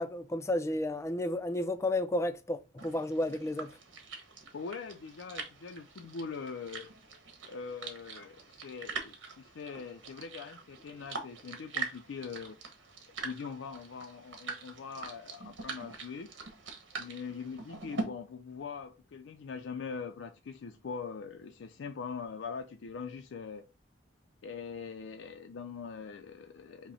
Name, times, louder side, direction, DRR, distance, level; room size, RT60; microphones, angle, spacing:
voice 1, 0.0-3.7, left 1 dB, 15° left, 0.4 m, -32 dB
sound 1, 2.8-18.0, right 4 dB, 85° right, 1.0 m, -43 dB
voice 2, 4.5-6.9 7.5-12.6 13.2-16.3 17.0-23.7 24.4-26.9, left 5 dB, 85° left, 0.4 m, -42 dB
5.5 x 2.1 x 4.0 m
head